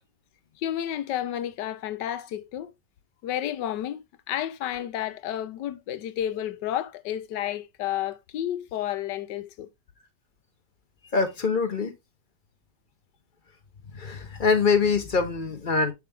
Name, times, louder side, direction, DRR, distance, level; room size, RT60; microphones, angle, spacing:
voice 1, 0.6-2.7 3.2-9.7, left 11 dB, 85° left, 1.3 m, -31 dB
voice 2, 11.1-11.9 13.8-15.9, left 4 dB, 35° left, 0.9 m, -24 dB
6.8 x 4.7 x 3.4 m
omnidirectional pair, 1.8 m